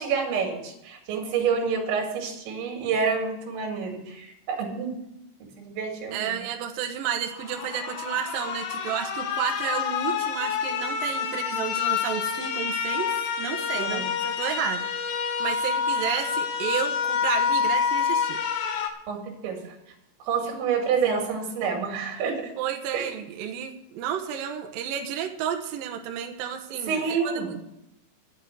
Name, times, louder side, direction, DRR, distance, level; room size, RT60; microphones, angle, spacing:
voice 1, 0.0-5.0 5.6-6.3 13.8-14.1 19.1-19.6 20.3-22.5 22.9-23.1 26.9-27.5, right 6 dB, 85° right, 2 dB, 4.6 m, -28 dB
voice 2, 6.1-14.9 15.4-18.4 22.6-27.6, right 9 dB, 70° right, 4 dB, 2.4 m, -31 dB
sound 1, 7.3-18.9, left 7 dB, 70° left, 2.7 m, -28 dB
11.0 x 8.2 x 8.0 m, 0.84 s
omnidirectional pair, 5.1 m